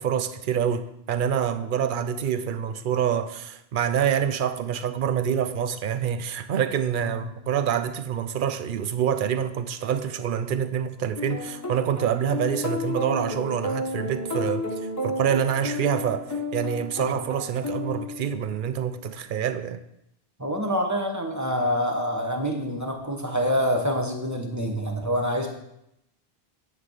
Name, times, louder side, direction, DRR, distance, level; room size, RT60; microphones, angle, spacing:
voice 1, 0.0-14.7 15.0-16.3 16.5-19.8, right 8 dB, 60° right, 0.7 m, -26 dB
sound 1, 11.2-18.6, left 2 dB, 15° left, 1.2 m, -32 dB
voice 2, 20.4-25.5, equal, 15° right, 1.2 m, -26 dB
9.5 x 4.0 x 7.3 m
omnidirectional pair, 1.1 m